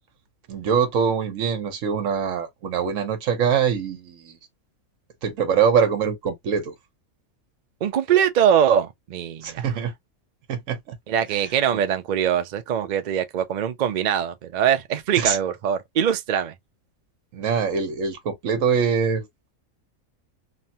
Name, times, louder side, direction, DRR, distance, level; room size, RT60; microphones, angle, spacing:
voice 1, 0.5-4.4 5.2-6.7 9.4-9.9 10.5-10.9 15.1-15.4 17.3-19.2, right 6 dB, 70° right, 1.2 m, -23 dB
voice 2, 7.8-9.7 11.1-16.5, right 9 dB, 90° right, 0.4 m, -22 dB
3.2 x 2.1 x 2.7 m
omnidirectional pair, 1.5 m